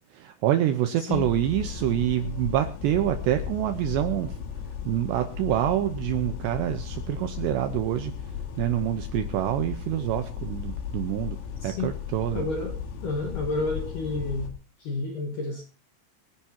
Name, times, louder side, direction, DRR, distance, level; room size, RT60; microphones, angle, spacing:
voice 1, 0.1-4.4 4.9-8.1 8.6-11.4 11.6-12.5, right 12 dB, 85° right, 8 dB, 2.5 m, -26 dB
voice 2, 1.0-1.3 11.6-11.9 12.3-12.8 13.0-14.5 14.8-15.6, left 3 dB, 65° left, 1 dB, 2.1 m, -30 dB
sound 1, 1.1-14.5, left 8 dB, 80° left, 4.7 m, -35 dB
26.5 x 10.0 x 2.8 m, 0.34 s
omnidirectional pair, 5.9 m